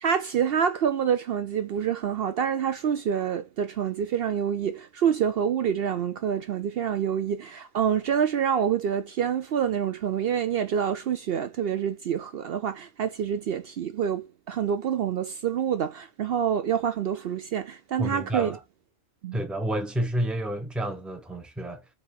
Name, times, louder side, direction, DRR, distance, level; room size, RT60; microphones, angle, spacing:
voice 1, 0.0-18.5 19.2-19.4, right 8 dB, 65° right, 0.7 m, -27 dB
voice 2, 18.0-18.6 19.3-21.9, right 1 dB, ahead, 0.7 m, -30 dB
5.4 x 2.9 x 3.0 m
omnidirectional pair, 1.2 m